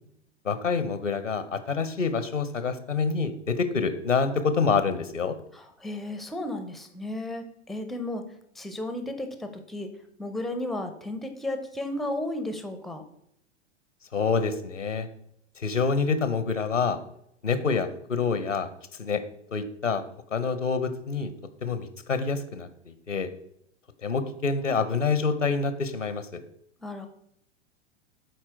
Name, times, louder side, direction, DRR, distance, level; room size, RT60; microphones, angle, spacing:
voice 1, 0.4-5.4 14.1-15.1 15.6-17.0 17.4-18.7 19.0-19.2 19.5-20.0 20.3-21.3 21.6-23.3 24.0-26.4, left 5 dB, 85° left, 11 dB, 0.8 m, -27 dB
voice 2, 5.5-8.2 8.6-9.9 10.2-13.0 26.8-27.1, left 1 dB, ahead, 7 dB, 0.4 m, -34 dB
7.9 x 4.3 x 4.5 m, 0.75 s
figure-of-eight pair, 95°, 36 cm